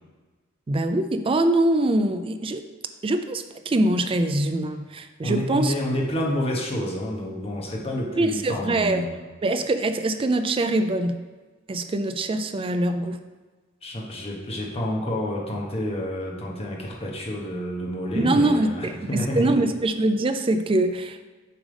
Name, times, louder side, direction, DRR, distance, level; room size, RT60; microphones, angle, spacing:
voice 1, 0.7-2.6 3.0-5.7 8.2-9.1 9.4-11.2 11.7-13.2 18.2-21.2, right 2 dB, 25° right, 9 dB, 0.4 m, -23 dB
voice 2, 5.2-9.2 13.8-19.6, equal, 30° left, -2 dB, 1.1 m, -29 dB
7.3 x 3.4 x 5.1 m, 1.4 s
head